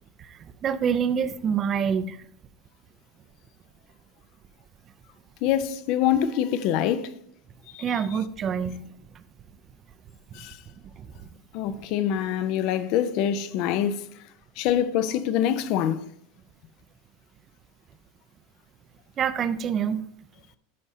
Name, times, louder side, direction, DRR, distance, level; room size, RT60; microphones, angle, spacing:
voice 1, 0.2-2.2 7.8-8.8 9.1-9.2 11.0-11.1 11.7-11.8 19.2-20.0, right 7 dB, 35° right, 0.6 m, -26 dB
voice 2, 5.4-7.1 7.7-7.8 10.3-10.6 11.5-14.1 14.6-16.0, left 10 dB, 55° left, 0.6 m, -25 dB
12.5 x 5.3 x 2.8 m
hypercardioid pair, 90°, 0 cm